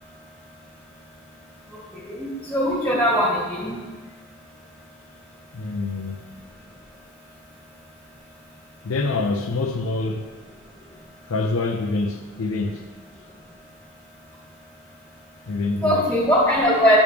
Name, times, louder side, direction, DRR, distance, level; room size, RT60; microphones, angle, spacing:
voice 1, 1.9-3.7 15.8-17.0, equal, 10° left, 1.8 m, -20 dB
voice 2, 5.5-6.2 8.8-10.3 11.3-12.8 15.5-16.1, left 3 dB, 70° left, 0.5 m, -26 dB
10.0 x 5.0 x 3.3 m
head